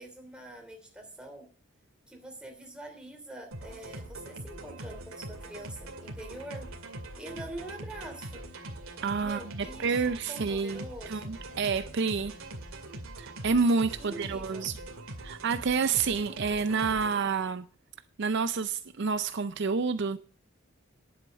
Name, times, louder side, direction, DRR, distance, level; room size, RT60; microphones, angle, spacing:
voice 1, 0.0-1.5 2.1-6.7 7.1-8.5 9.2-11.4 14.0-14.7, right 1 dB, 5° right, 3.0 m, -45 dB
sound 1, 3.5-17.2, right 1 dB, 85° right, 2.3 m, -42 dB
voice 2, 9.0-12.3 13.2-14.8 15.2-17.7 18.2-20.2, right 5 dB, 55° right, 0.5 m, -29 dB
11.0 x 8.1 x 6.3 m
head